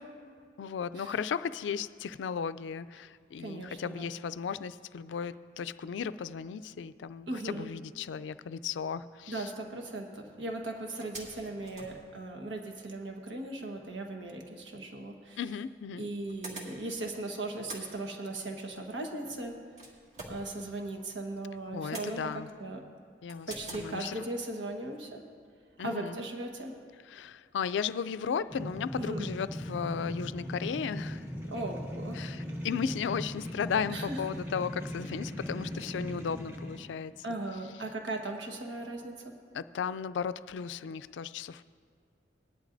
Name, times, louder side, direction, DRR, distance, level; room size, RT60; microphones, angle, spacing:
voice 1, 0.6-9.5 15.4-16.1 21.7-22.5 23.2-24.2 25.8-26.2 27.1-31.3 32.2-37.1 39.5-41.6, left 6 dB, 85° left, 15 dB, 0.3 m, -35 dB
voice 2, 3.4-4.1 7.3-7.7 9.3-15.4 16.0-19.5 20.3-22.8 23.5-25.2 25.8-26.7 29.0-29.3 31.5-32.2 33.9-34.3 37.2-39.3, right 2 dB, 85° right, 2 dB, 1.4 m, -38 dB
sound 1, 11.0-12.8 14.8-14.9 15.8-17.2 17.4-21.2 21.5-22.7 23.3-23.9, right 2 dB, 40° right, 2.1 m, -47 dB
sound 2, 28.5-36.8, equal, 15° right, 1.2 m, -39 dB
19.0 x 11.5 x 2.6 m, 2.1 s
head